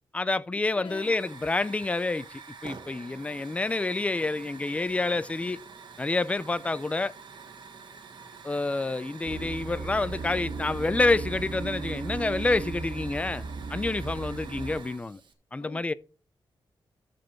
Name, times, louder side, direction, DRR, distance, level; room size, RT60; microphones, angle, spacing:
voice 1, 0.1-5.6 6.0-7.1 8.4-13.4 13.7-15.2 15.5-15.9, left 3 dB, 15° left, 0.4 m, -28 dB
voice 2, 0.7-1.2 15.6-15.9, left 7 dB, 70° left, 0.5 m, -44 dB
Hiss / Fire, 0.8-15.3, right 5 dB, 65° right, 1.6 m, -47 dB
sound 1, 9.2-14.8, right 4 dB, 90° right, 1.9 m, -36 dB
13.5 x 5.1 x 4.6 m
wide cardioid pair, 145°, 9 cm